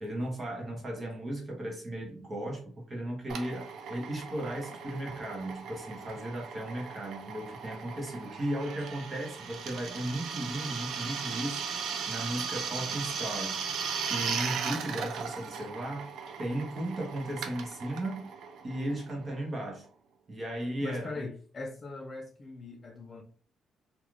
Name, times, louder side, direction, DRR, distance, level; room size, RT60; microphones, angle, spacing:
voice 1, 0.0-13.6 14.0-16.1 16.4-18.3 18.6-19.9 20.3-21.3, right 1 dB, 25° right, 0.8 m, -36 dB
Drill, 3.3-19.6, right 6 dB, 65° right, 0.4 m, -37 dB
voice 2, 20.8-23.2, left 3 dB, 25° left, 0.4 m, -40 dB
2.4 x 2.3 x 3.0 m
cardioid pair, 180°, 0 cm